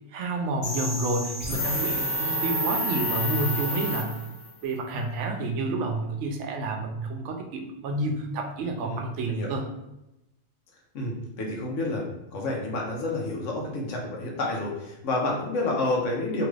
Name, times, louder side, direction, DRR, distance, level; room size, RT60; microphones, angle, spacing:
voice 1, 0.1-4.1 4.6-9.7, right 2 dB, 75° right, 3 dB, 0.9 m, -29 dB
sound 1, 0.6-4.5, equal, 45° left, 1.3 m, -29 dB
voice 2, 10.9-16.5, left 2 dB, 75° left, -1 dB, 1.1 m, -29 dB
3.0 x 2.4 x 3.1 m, 0.92 s
omnidirectional pair, 1.3 m